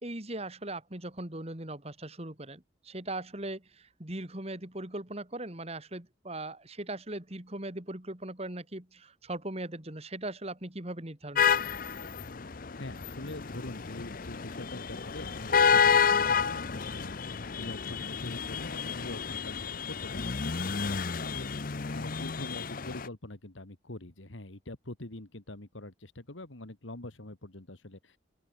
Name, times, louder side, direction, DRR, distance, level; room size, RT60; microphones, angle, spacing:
voice 1, 0.0-11.5, right 1 dB, 30° right, 2.6 m, -39 dB
sound 1, 11.4-23.1, left 6 dB, 45° left, 0.7 m, -30 dB
voice 2, 12.8-28.2, left 1 dB, 80° left, 2.2 m, -44 dB
open air
head